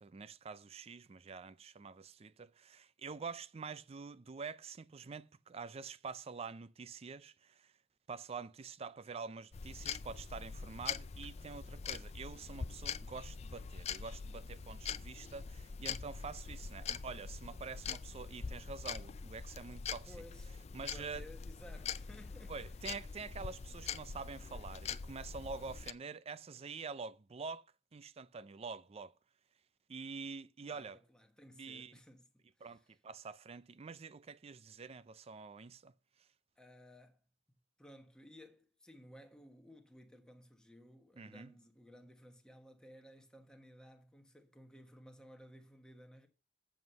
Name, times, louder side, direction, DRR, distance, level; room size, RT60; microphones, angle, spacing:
voice 1, 0.0-7.7 8.1-20.1 20.7-21.3 22.5-27.6 27.9-29.1 29.9-31.0 31.5-32.0 32.6-35.9 41.2-41.5, right 5 dB, 35° right, 0.4 m, -47 dB
sound 1, 9.5-25.9, left 6 dB, 35° left, 0.4 m, -44 dB
voice 2, 19.8-22.7 30.6-32.3 32.6-32.8 36.6-37.2 37.8-46.3, equal, 5° left, 1.3 m, -57 dB
7.9 x 7.3 x 5.5 m
head